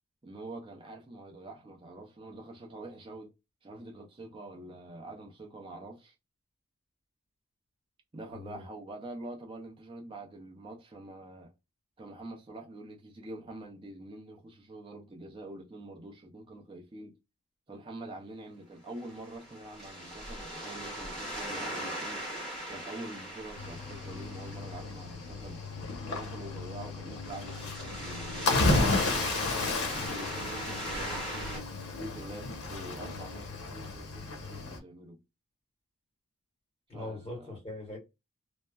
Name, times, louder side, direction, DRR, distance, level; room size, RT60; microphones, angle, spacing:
voice 1, 0.2-3.3 3.6-6.1 8.1-11.5 12.0-17.2 17.7-22.2 22.7-25.6 26.1-29.3 29.6-31.7 32.0-35.2 36.9-37.6, right 2 dB, 25° right, 0.4 m, -45 dB
sound 1, 18.9-31.6, equal, ahead, 1.0 m, -40 dB
Cricket / Waves surf, 23.6-34.8, left 3 dB, 80° left, 0.8 m, -33 dB
voice 2, 36.9-38.0, left 2 dB, 25° left, 1.4 m, -41 dB
3.3 x 2.1 x 2.2 m
head